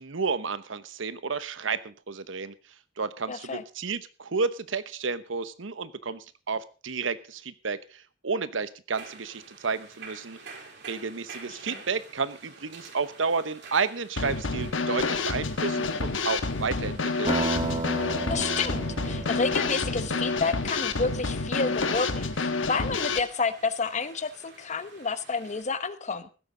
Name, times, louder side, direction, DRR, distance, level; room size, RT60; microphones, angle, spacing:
voice 1, 0.0-2.5 3.0-10.4 10.8-17.4, right 4 dB, 85° right, 14 dB, 1.0 m, -31 dB
voice 2, 3.3-3.6 11.5-11.8 18.3-26.3, left 4 dB, 40° left, 13 dB, 1.0 m, -30 dB
sound 1, 8.9-25.6, right 4 dB, 65° right, 3.7 m, -49 dB
Drum kit / Snare drum, 14.2-23.2, left 4 dB, 80° left, 1.3 m, -28 dB
sound 2, 17.3-21.6, right 2 dB, 25° right, 0.9 m, -33 dB
15.5 x 12.5 x 3.9 m, 0.34 s
head